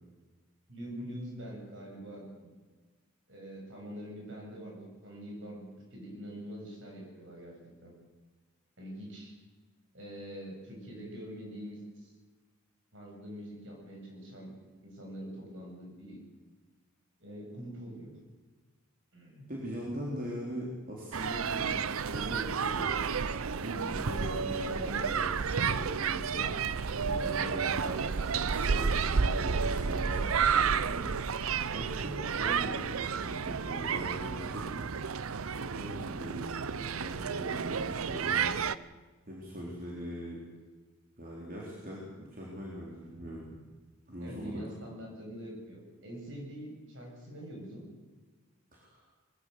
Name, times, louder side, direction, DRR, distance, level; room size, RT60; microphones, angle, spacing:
voice 1, 0.7-2.5 3.3-7.6 7.8-7.9 8.8-9.3 9.9-12.1 12.9-14.5 14.8-16.2 17.2-18.2 19.1-19.5 44.2-47.9, equal, 60° right, 0 dB, 7.6 m, -44 dB
voice 2, 19.5-21.8 22.1-26.8 27.1-31.4 31.7-34.8 35.5-38.5 39.3-40.4 41.2-43.6 44.1-44.6 48.7-49.0, equal, 40° right, -4 dB, 4.1 m, -41 dB
sound 1, 21.1-38.7, right 6 dB, 85° right, 0.7 m, -31 dB
22.0 x 15.5 x 8.0 m, 1.3 s
head